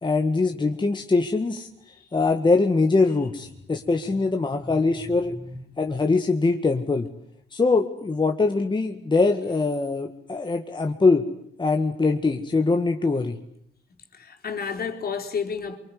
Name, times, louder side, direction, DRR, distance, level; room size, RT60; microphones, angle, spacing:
voice 1, 0.0-1.7 2.1-5.4 5.8-7.1 7.5-11.2 11.6-13.4, left 3 dB, 25° left, 1.9 m, -22 dB
voice 2, 5.3-5.6 14.1-15.8, left 6 dB, 50° left, 4.1 m, -31 dB
24.5 x 24.5 x 9.5 m
cardioid pair, 90°, 20 cm